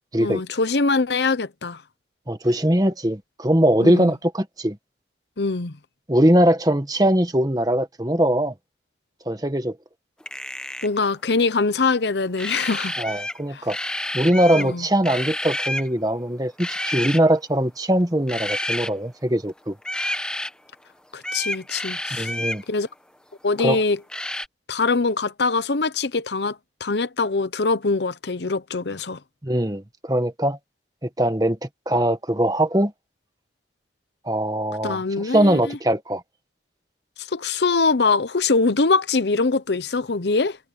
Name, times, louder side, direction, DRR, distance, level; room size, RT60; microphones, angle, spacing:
voice 1, 0.2-1.8 3.8-4.1 5.4-5.8 10.8-13.2 13.5-13.6 14.6-14.9 21.1-22.3 22.7-22.9 23.4-24.0 24.7-26.6 26.8-29.2 34.8-35.8 37.2-40.6, left 3 dB, 75° left, 0.8 m, -23 dB
voice 2, 2.3-4.8 6.1-8.5 9.3-9.7 13.0-13.8 14.1-19.7 22.1-22.6 23.6-23.8 29.4-30.6 31.0-32.9 34.2-36.2, right 1 dB, 20° right, 1.4 m, -21 dB
sound 1, 10.2-11.0 12.4-13.4 13.7-14.7 15.0-15.9 16.6-17.2 18.3-18.9 19.8-20.5 21.2-22.6 24.1-24.5, left 1 dB, 5° left, 1.0 m, -29 dB
head